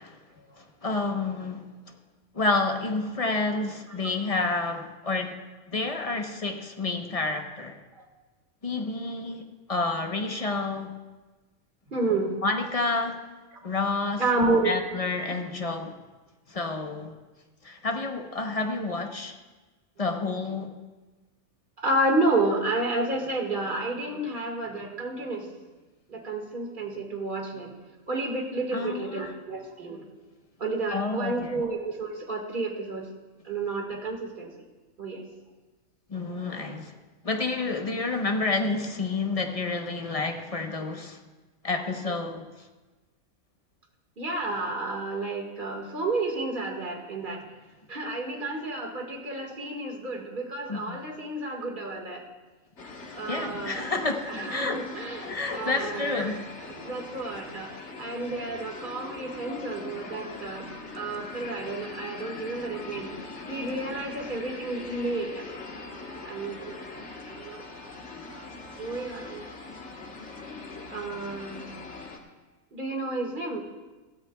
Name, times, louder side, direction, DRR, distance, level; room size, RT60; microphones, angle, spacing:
voice 1, 0.6-1.7 2.3-5.4 5.7-7.8 8.6-11.0 12.4-13.3 13.6-14.2 14.6-15.9 16.5-17.2 17.6-19.3 20.0-20.7 28.7-29.4 30.9-31.5 36.1-36.9 37.2-41.2 41.6-42.5 50.7-51.0 53.3-54.9 55.2-56.4, left 3 dB, 30° left, 4 dB, 0.9 m, -29 dB
voice 2, 11.9-12.4 14.1-14.7 15.2-15.3 20.1-20.3 21.8-25.5 26.1-27.7 28.1-30.1 30.6-33.1 33.4-34.5 35.0-35.2 44.2-47.4 47.9-52.2 53.1-56.4 56.7-57.7 58.0-60.7 60.9-63.1 63.5-65.5 66.3-67.6 68.3-68.5 68.8-69.4 70.9-71.6 72.7-73.6, right 2 dB, 35° right, 1 dB, 1.9 m, -31 dB
sound 1, 52.8-72.2, left 3 dB, 55° left, 1.7 m, -41 dB
21.0 x 13.5 x 2.3 m, 1.2 s
omnidirectional pair, 1.4 m